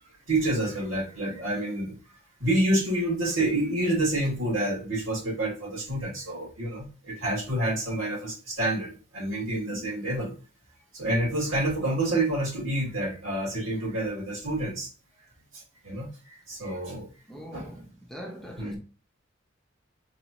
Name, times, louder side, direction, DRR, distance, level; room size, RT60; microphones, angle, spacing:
voice 1, 0.3-1.9 2.4-10.3 10.9-14.9 15.5-17.1 17.5-17.7 18.6-18.8, right 1 dB, 85° right, 2.4 m, -28 dB
voice 2, 17.3-18.8, equal, ahead, 0.7 m, -42 dB
4.0 x 3.6 x 2.9 m
head